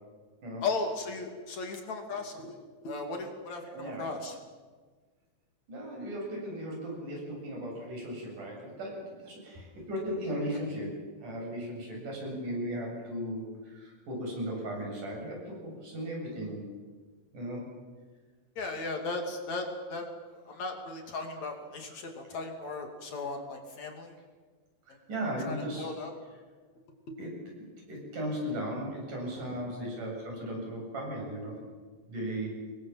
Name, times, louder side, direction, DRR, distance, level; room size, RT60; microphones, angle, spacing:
voice 1, 0.6-2.6 2.8-4.4 18.6-20.1 20.4-24.2 25.5-26.1 29.1-29.7, left 3 dB, 55° left, 3 dB, 3.8 m, -36 dB
voice 2, 3.7-4.1 5.7-10.9 11.2-16.6 17.3-17.6 24.9-25.9 27.2-31.6 32.1-32.6, equal, 60° right, -1 dB, 9.3 m, -36 dB
26.5 x 22.0 x 7.5 m, 1.5 s
omnidirectional pair, 4.0 m